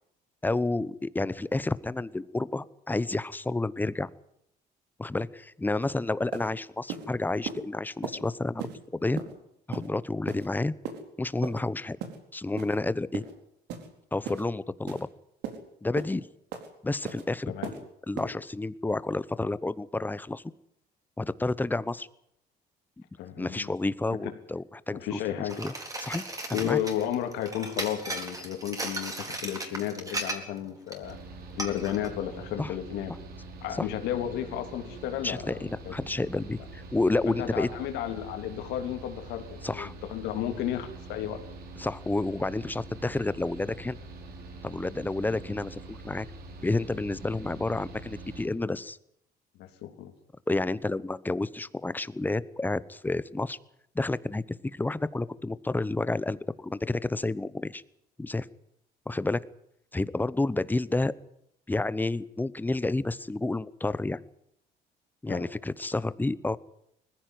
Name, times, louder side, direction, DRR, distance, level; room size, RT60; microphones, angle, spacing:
voice 1, 0.4-4.1 5.0-8.6 8.9-9.2 9.7-10.7 11.2-12.0 12.3-13.2 14.1-15.1 15.8-16.3 16.8-17.8 18.1-20.4 21.2-22.1 23.4-25.2 25.6-25.7 26.0-26.2 26.5-26.8 32.6-32.7 33.8-33.9 35.2-37.7 39.6-39.9 41.8-44.0 44.6-46.3 46.6-49.0 50.5-53.6 53.9-54.4 54.7-57.8 58.2-58.5 59.1-59.4 59.9-61.1 61.7-64.2 65.2-66.6, left 2 dB, 10° left, 17 dB, 0.9 m, -30 dB
sound 1, 5.8-5.9 6.3-6.5 6.9-7.1 7.4-7.6 8.0-8.2 8.6-8.8 9.2-9.3 9.7-9.9 10.3-10.5 10.8-11.0 11.4-11.6 12.0-12.2 12.6-12.8 13.1-13.3 13.7-13.9 14.2-14.4 14.9-15.0 15.4-15.6 16.0-16.1 16.5-16.7 17.0-17.2 17.6-17.8 18.2-18.3, right 8 dB, 80° right, 4.2 m, -37 dB
voice 2, 23.2-23.7 24.2-24.3 24.9-25.6 26.5-31.2 31.6-33.1 33.6-35.9 37.3-41.4 49.6-50.1 65.3-65.4, left 11 dB, 90° left, 7 dB, 3.2 m, -33 dB
sound 2, 25.5-30.6 30.9-31.1 31.6-32.1, right 2 dB, 20° right, 4.2 m, -36 dB
Mechanical fan, 31.0-48.5, right 2 dB, 65° right, 5.4 m, -44 dB
20.5 x 15.5 x 9.5 m, 0.75 s
cardioid pair, 110°, 17 cm